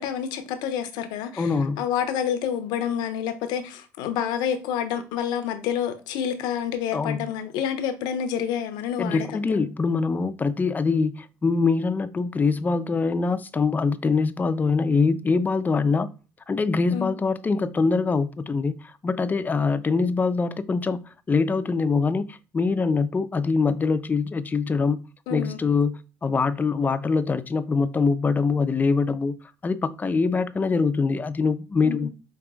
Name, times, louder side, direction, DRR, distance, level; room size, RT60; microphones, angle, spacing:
voice 1, 0.0-1.5 1.8-9.6 16.9-17.1 25.3-25.6 31.8-32.1, left 9 dB, 75° left, 0.6 m, -28 dB
voice 2, 1.4-1.8 6.9-7.3 9.0-16.1 16.5-29.4 29.6-32.1, left 4 dB, 25° left, 0.4 m, -24 dB
4.9 x 2.6 x 2.3 m
supercardioid pair, 80°, 7 cm